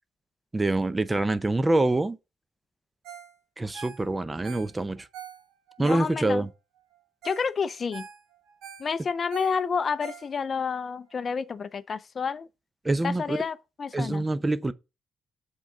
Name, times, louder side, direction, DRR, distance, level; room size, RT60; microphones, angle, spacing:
voice 1, 0.5-2.2 3.6-5.1 5.8-6.5 12.8-13.4 13.9-14.7, right 2 dB, 20° right, 0.5 m, -25 dB
Ringtone, 3.0-3.3 3.6-6.5 6.9-7.0 7.2-7.5 7.8-10.7 11.1-11.2, right 8 dB, 90° right, 1.9 m, -44 dB
voice 2, 5.8-6.5 7.2-8.1 8.8-12.5 13.0-14.2, left 5 dB, 45° left, 0.4 m, -30 dB
6.2 x 3.8 x 4.8 m
cardioid pair, 90°, 0 cm